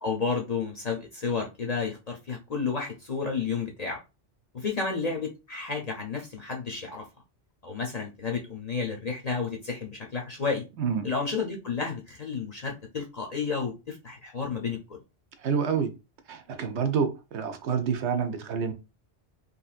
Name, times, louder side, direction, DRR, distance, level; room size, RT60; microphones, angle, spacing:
voice 1, 0.0-4.0 4.5-7.1 7.6-10.6 11.0-15.0, left 5 dB, 45° left, 0.6 m, -31 dB
voice 2, 15.4-15.9 16.3-18.7, right 6 dB, 75° right, 0.9 m, -28 dB
3.2 x 2.7 x 2.4 m
omnidirectional pair, 1.2 m